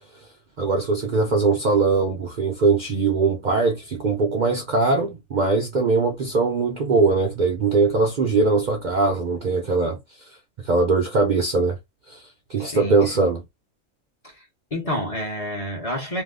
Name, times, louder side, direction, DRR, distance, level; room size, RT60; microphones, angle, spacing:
voice 1, 0.6-10.0 10.3-11.8 12.1-12.2 12.5-13.4, right 3 dB, 50° right, 0.6 m, -21 dB
voice 2, 12.6-13.3 14.2-14.4 14.7-16.2, equal, 30° left, 0.9 m, -29 dB
2.7 x 2.1 x 3.5 m
omnidirectional pair, 1.4 m